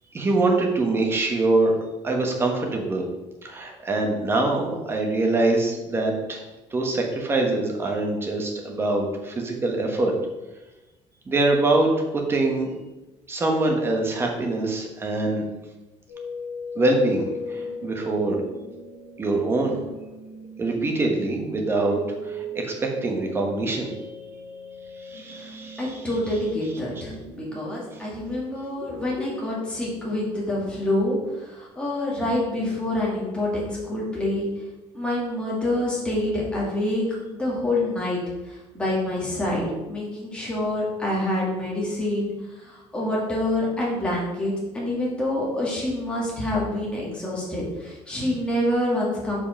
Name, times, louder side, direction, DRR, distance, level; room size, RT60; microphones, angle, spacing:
voice 1, 0.1-1.7 2.0-3.0 3.4-6.4 6.7-10.1 11.3-12.7 13.3-15.4 16.7-18.4 19.2-19.8 20.6-22.0 22.2-23.9 25.0-26.0, right 2 dB, 20° right, 1 dB, 1.1 m, -24 dB
sound 1, 16.1-28.1, equal, 45° left, 1.5 m, -38 dB
voice 2, 25.8-34.5 34.9-37.0 37.3-38.2 38.5-49.5, left 1 dB, 10° left, -5 dB, 1.9 m, -27 dB
5.4 x 4.9 x 5.1 m, 1.1 s
cardioid pair, 160°, 12 cm